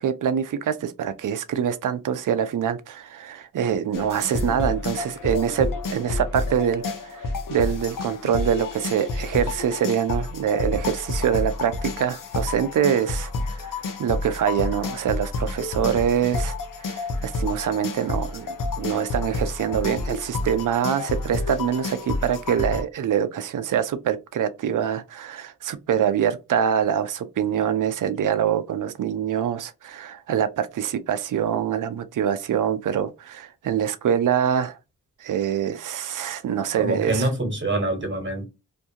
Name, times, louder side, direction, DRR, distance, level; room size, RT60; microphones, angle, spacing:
voice 1, 0.0-16.6 16.9-34.8 35.2-37.3, right 9 dB, 65° right, 0.5 m, -25 dB
sound 1, 3.9-22.8, left 3 dB, 70° left, 0.6 m, -30 dB
voice 2, 36.8-38.5, right 1 dB, 35° right, 1.3 m, -25 dB
2.6 x 2.3 x 2.7 m
cardioid pair, 45°, 33 cm